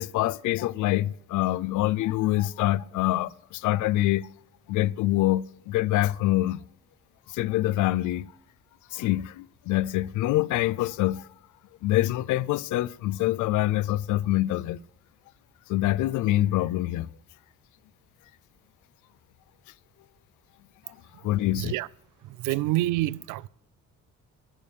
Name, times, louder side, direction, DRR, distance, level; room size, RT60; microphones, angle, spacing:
voice 1, 0.0-4.3 4.7-6.6 7.3-8.3 8.9-11.3 11.8-14.8 15.7-17.1 20.9-21.0 21.2-21.7, left 15 dB, 80° left, 0.5 m, -25 dB
voice 2, 21.5-21.9 22.2-23.5, right 17 dB, 85° right, 0.5 m, -27 dB
16.0 x 6.8 x 7.0 m
cardioid pair, 90°, 30 cm